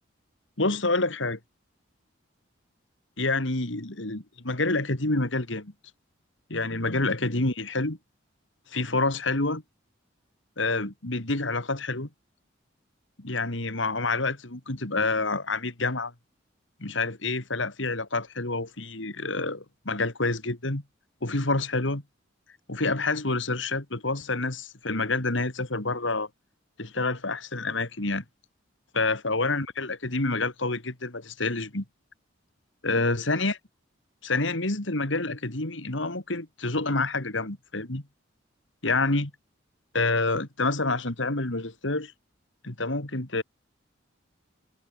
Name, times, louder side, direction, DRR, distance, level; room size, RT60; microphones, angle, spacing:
voice 1, 0.6-1.4 3.2-5.7 6.5-8.0 8.7-9.6 10.6-12.1 13.2-16.1 16.8-20.8 21.2-22.0 22.7-26.3 26.8-28.2 28.9-31.8 32.8-33.6 34.2-38.0 38.8-39.3 39.9-42.1 42.6-43.4, left 3 dB, 75° left, 2.9 m, -28 dB
head